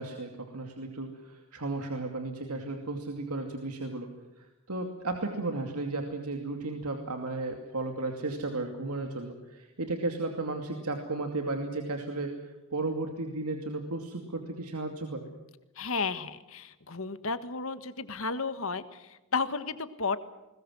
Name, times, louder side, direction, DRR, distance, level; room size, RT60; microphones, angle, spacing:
voice 1, 0.0-4.1 4.4-15.3, right 2 dB, 90° right, 4 dB, 2.5 m, -34 dB
voice 2, 15.7-20.2, left 4 dB, 65° left, 12 dB, 1.5 m, -33 dB
21.0 x 20.5 x 7.8 m, 1.0 s
head